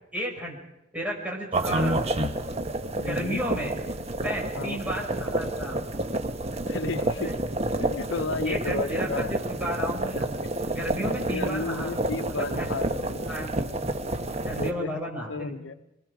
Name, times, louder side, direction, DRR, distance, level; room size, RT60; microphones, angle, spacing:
voice 1, 0.1-0.6 0.9-2.0 3.0-3.8 4.2-5.9 7.0-7.4 8.4-10.4 10.7-11.9 12.3-12.8 13.3-13.6 14.4-15.7, equal, 10° right, -2 dB, 6.0 m, -33 dB
sound 1, 1.5-14.7, right 1 dB, 35° right, 1.2 m, -29 dB
voice 2, 3.0-3.4 4.6-4.8 6.6-7.3 7.8-9.3 9.9-10.0 10.4-10.5 11.3-13.3 14.1-15.7, left 3 dB, 80° left, 11 dB, 0.7 m, -33 dB
26.0 x 21.5 x 4.9 m, 0.91 s
head